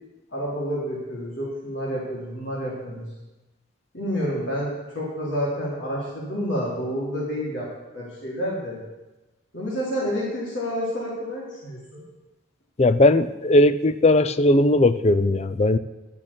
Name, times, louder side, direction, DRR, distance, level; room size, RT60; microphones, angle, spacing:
voice 1, 0.3-3.1 3.9-7.7 7.9-8.8 9.5-12.0, equal, 70° left, -5 dB, 3.5 m, -29 dB
voice 2, 12.8-15.8, left 1 dB, 30° left, 12 dB, 0.4 m, -18 dB
11.5 x 6.6 x 8.6 m, 1.1 s
head